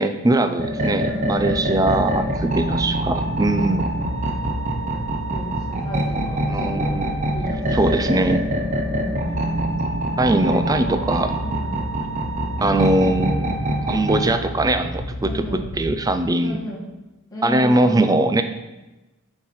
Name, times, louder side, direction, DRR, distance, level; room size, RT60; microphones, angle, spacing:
voice 1, 0.0-3.9 6.5-7.2 7.7-8.5 10.2-11.4 12.6-13.5 13.9-16.6 17.4-18.4, right 2 dB, 15° right, 9 dB, 0.4 m, -21 dB
sound 1, 0.6-14.3, right 1 dB, 35° right, 0.8 m, -25 dB
voice 2, 1.0-1.5 1.7-2.3 3.7-4.1 5.3-7.0 7.3-8.1 8.9-9.4 10.4-11.1 11.4-11.8 15.2-15.7 16.4-16.9 17.3-18.1, equal, 15° left, -6 dB, 2.0 m, -34 dB
sound 2, 1.2-16.5, equal, 80° left, 1.3 m, -32 dB
6.9 x 4.5 x 4.7 m, 1.1 s
head